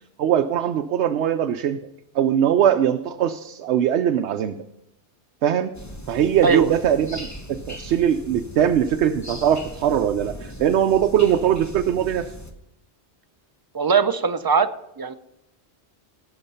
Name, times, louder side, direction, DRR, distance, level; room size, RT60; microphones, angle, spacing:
voice 1, 0.2-1.8 2.1-4.6 5.4-5.7 6.1-12.3, right 9 dB, 75° right, 6 dB, 0.9 m, -21 dB
sound 1, 5.7-12.5, left 1 dB, 15° left, 0.8 m, -39 dB
voice 2, 13.7-14.7 15.0-15.1, right 5 dB, 35° right, 10 dB, 0.3 m, -20 dB
17.0 x 5.8 x 5.5 m, 0.83 s
omnidirectional pair, 1.2 m